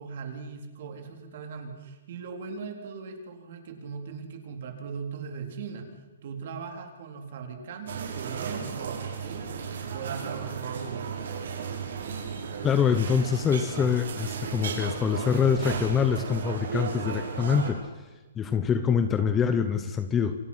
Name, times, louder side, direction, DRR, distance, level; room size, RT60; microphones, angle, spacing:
voice 1, 0.0-5.9 6.2-11.3, right 5 dB, 45° right, 4 dB, 3.8 m, -39 dB
sound 1, 7.9-17.7, right 6 dB, 65° right, 6.6 m, -34 dB
voice 2, 12.6-17.8 18.4-20.4, left 7 dB, 10° left, 10 dB, 0.8 m, -25 dB
28.0 x 24.5 x 5.7 m, 1.2 s
hypercardioid pair, 170°, 0 cm